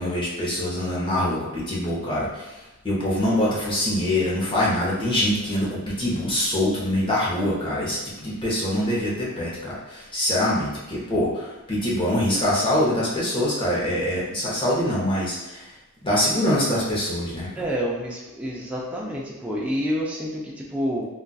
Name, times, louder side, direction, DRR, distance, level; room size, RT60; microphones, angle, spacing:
voice 1, 0.0-15.7 16.0-17.5, left 1 dB, 25° left, -6 dB, 0.7 m, -24 dB
voice 2, 17.6-21.1, equal, 5° right, -4 dB, 0.4 m, -28 dB
3.8 x 2.3 x 2.3 m, 1.1 s
head